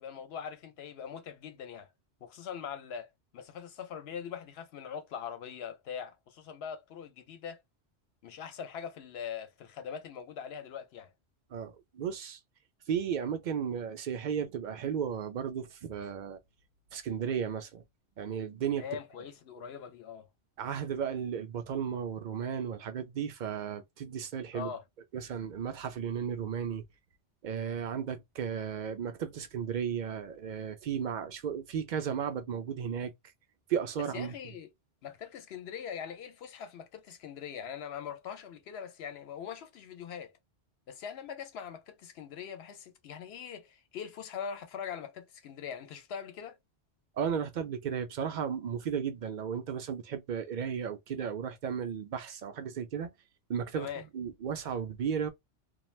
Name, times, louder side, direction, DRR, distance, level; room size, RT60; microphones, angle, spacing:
voice 1, 0.0-1.9 2.2-7.6 8.2-11.1 18.8-20.3 24.5-24.8 34.1-34.7 35.0-40.3 40.9-46.6 53.7-54.0, left 7 dB, 70° left, 0.9 m, -42 dB
voice 2, 11.5-12.4 12.9-16.4 16.9-17.8 18.2-18.8 20.6-24.7 25.1-26.8 27.4-33.1 33.7-34.3 47.2-53.1 53.5-55.3, right 7 dB, 55° right, 0.6 m, -34 dB
2.4 x 2.2 x 3.1 m
omnidirectional pair, 1.2 m